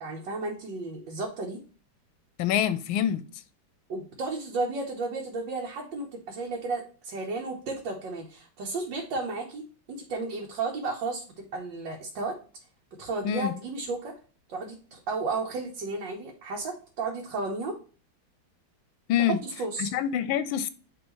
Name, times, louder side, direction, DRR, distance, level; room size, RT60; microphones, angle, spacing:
voice 1, 0.0-1.6 3.9-12.4 13.0-14.1 14.5-17.8 19.2-19.9, right 3 dB, 70° right, 1.7 m, -33 dB
voice 2, 2.4-3.2 13.2-13.5 19.1-19.4 19.8-20.7, left 9 dB, 85° left, 1.4 m, -26 dB
9.5 x 3.3 x 3.1 m
omnidirectional pair, 2.1 m